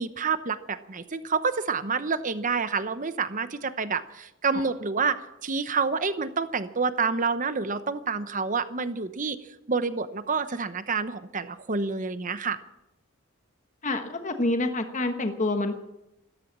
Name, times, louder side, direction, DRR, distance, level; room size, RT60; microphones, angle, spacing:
voice 1, 0.0-9.4 9.7-12.6, right 5 dB, 35° right, 12 dB, 0.9 m, -28 dB
voice 2, 13.8-15.8, left 2 dB, 35° left, 6 dB, 1.3 m, -27 dB
14.5 x 13.5 x 7.4 m, 0.90 s
head